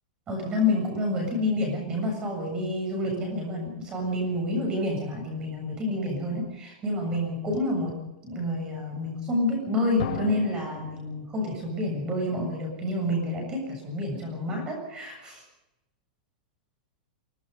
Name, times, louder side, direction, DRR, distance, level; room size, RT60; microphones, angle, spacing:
voice 1, 0.3-8.0 8.2-15.4, left 1 dB, 15° right, 2 dB, 7.3 m, -28 dB
Drum, 10.0-12.7, left 6 dB, 55° left, 6.9 m, -38 dB
25.0 x 19.0 x 5.6 m, 0.92 s
supercardioid pair, 175°, 5 cm